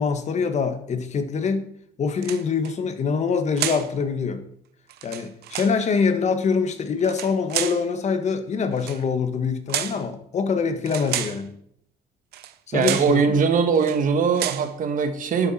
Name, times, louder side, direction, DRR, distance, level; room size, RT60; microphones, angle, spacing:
voice 1, 0.0-1.7 2.0-4.4 5.0-11.5 12.7-13.2, left 5 dB, 40° left, 8 dB, 1.5 m, -24 dB
sound 1, 2.2-2.7 3.6-3.9 4.9-5.8 7.0-7.9 8.8-9.0 9.7-10.0 10.9-11.4 12.3-12.5 12.8-13.2 13.8-14.0 14.4-14.7, right 12 dB, 70° right, 0.8 m, -30 dB
voice 2, 12.7-15.5, right 6 dB, 50° right, 7 dB, 1.6 m, -21 dB
11.5 x 7.2 x 4.4 m, 0.69 s
cardioid pair, 110°, 17 cm